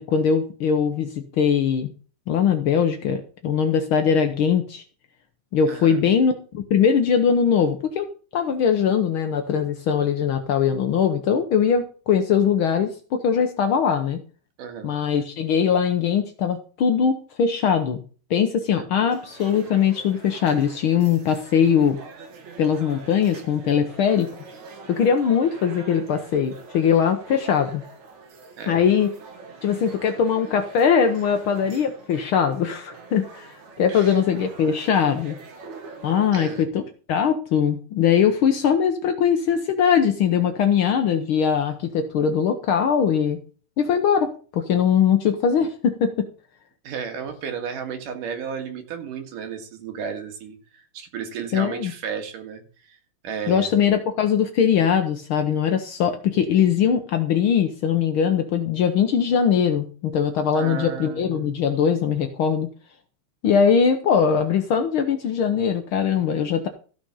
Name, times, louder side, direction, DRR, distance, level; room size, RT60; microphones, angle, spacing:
voice 1, 0.0-1.9 2.3-4.8 5.5-14.2 14.8-18.0 18.3-22.0 22.6-24.3 24.9-27.8 28.7-29.1 29.6-35.4 36.0-36.8 37.1-43.4 43.8-46.3 51.5-51.9 53.5-62.7 63.4-66.7, left 7 dB, 80° left, 6 dB, 1.1 m, -21 dB
voice 2, 5.7-6.0 14.6-14.9 18.7-18.9 28.6-28.8 33.9-34.2 36.3-36.6 46.8-53.0 53.2-53.7 60.5-61.5, right 7 dB, 80° right, 5 dB, 3.3 m, -33 dB
sound 1, 19.1-36.7, right 4 dB, 65° right, 3.3 m, -44 dB
14.0 x 6.3 x 5.5 m, 0.40 s
omnidirectional pair, 3.7 m